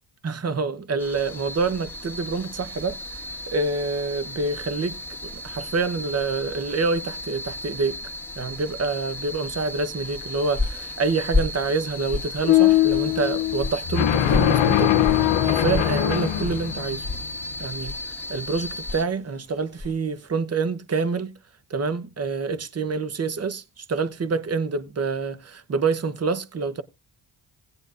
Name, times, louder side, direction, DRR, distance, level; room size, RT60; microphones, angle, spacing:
voice 1, 0.2-8.0 8.4-14.9 15.4-17.1 17.6-18.0 18.3-21.3 21.7-26.8, right 4 dB, 35° right, 1.0 m, -27 dB
sound 1, 1.0-19.0, left 1 dB, 5° left, 1.9 m, -36 dB
sound 2, 10.0-20.1, left 2 dB, 15° right, 1.7 m, -33 dB
sound 3, 12.5-17.5, left 12 dB, 70° left, 0.8 m, -21 dB
16.0 x 9.8 x 2.5 m
cardioid pair, 65°, 46 cm